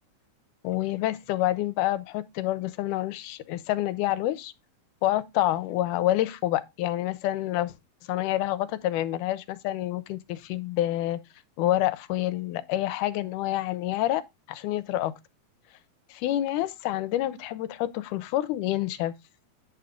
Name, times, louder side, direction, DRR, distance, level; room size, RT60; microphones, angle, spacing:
voice 1, 0.6-4.5 5.0-7.7 8.1-11.2 11.6-14.2 14.5-15.1 16.1-19.1, left 14 dB, 85° left, 2.2 m, -28 dB
8.9 x 3.5 x 5.0 m
omnidirectional pair, 3.6 m